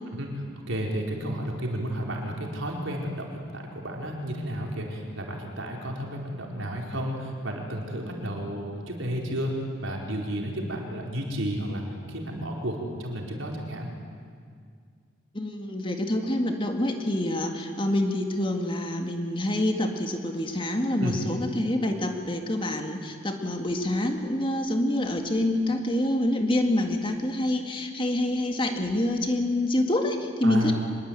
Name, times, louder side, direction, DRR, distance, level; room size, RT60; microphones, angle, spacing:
voice 1, 0.1-9.5 9.8-11.8 12.1-13.9 21.0-21.2 30.4-30.7, right 1 dB, 75° right, 0 dB, 4.5 m, -32 dB
voice 2, 15.3-30.7, left 1 dB, 25° left, 4 dB, 2.0 m, -26 dB
24.5 x 21.5 x 9.0 m, 2.1 s
head